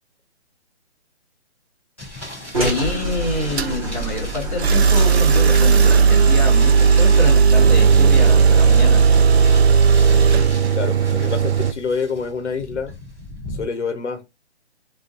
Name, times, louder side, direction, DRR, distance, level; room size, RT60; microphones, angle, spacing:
sound 1, 2.0-13.6, left 1 dB, 10° left, 0.6 m, -38 dB
voice 1, 2.5-9.0, left 2 dB, 30° left, 2.0 m, -27 dB
sound 2, 2.5-7.6, right 1 dB, 30° right, 1.2 m, -28 dB
sound 3, 3.6-3.7 4.6-11.7, right 6 dB, 65° right, 0.5 m, -14 dB
voice 2, 10.7-12.9 13.5-14.2, left 5 dB, 85° left, 0.9 m, -27 dB
3.5 x 2.5 x 2.5 m
hypercardioid pair, 180°, 34 cm